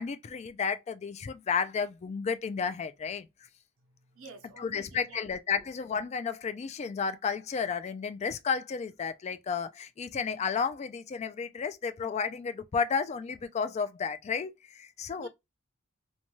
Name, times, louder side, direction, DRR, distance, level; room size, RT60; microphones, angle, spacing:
voice 1, 0.0-3.3 4.6-15.3, left 6 dB, 35° left, 0.3 m, -32 dB
voice 2, 3.8-5.3 5.5-5.7 15.2-15.3, right 3 dB, 80° right, 0.7 m, -49 dB
2.6 x 2.2 x 2.9 m
head